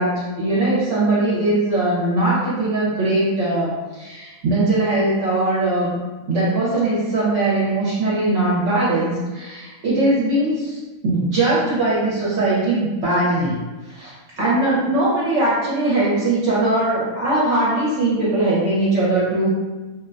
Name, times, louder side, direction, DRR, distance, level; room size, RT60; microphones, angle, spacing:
voice 1, 0.0-6.0 6.3-13.6 13.9-19.5, right 2 dB, 65° right, -8 dB, 0.9 m, -20 dB
2.4 x 2.1 x 2.4 m, 1.2 s
omnidirectional pair, 1.5 m